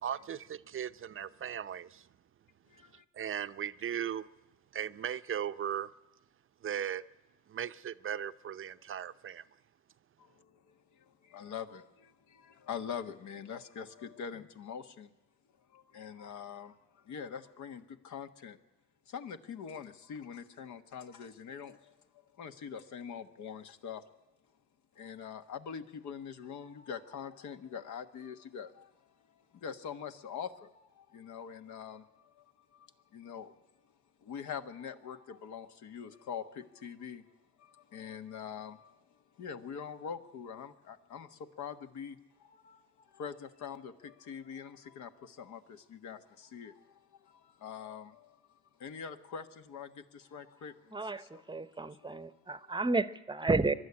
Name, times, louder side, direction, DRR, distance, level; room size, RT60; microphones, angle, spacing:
voice 1, 0.0-2.1 3.1-4.3 4.7-5.9 6.6-7.0 7.5-9.4, right 9 dB, 40° right, 0.7 m, -37 dB
voice 2, 2.7-3.0 10.2-15.1 15.7-18.6 19.1-21.9 22.4-24.0 24.9-33.5 34.2-37.2 37.6-52.7, left 7 dB, 65° left, 1.5 m, -44 dB
voice 3, 50.9-53.7, right 3 dB, 15° right, 0.8 m, -32 dB
23.5 x 11.5 x 9.7 m
supercardioid pair, 80°, 31 cm